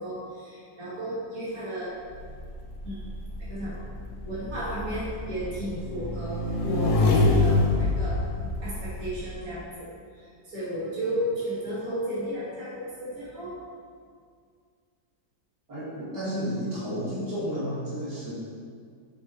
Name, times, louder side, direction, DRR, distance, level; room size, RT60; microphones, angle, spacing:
voice 1, 0.0-1.9 2.8-3.1 3.5-3.8 4.2-13.5, equal, 45° right, -9 dB, 2.9 m, -34 dB
Motorcycle / Engine, 2.1-9.2, left 2 dB, 50° left, 1.2 m, -26 dB
voice 2, 15.7-18.3, equal, 65° right, -10 dB, 3.1 m, -31 dB
7.6 x 7.4 x 4.4 m, 2.1 s
omnidirectional pair, 2.0 m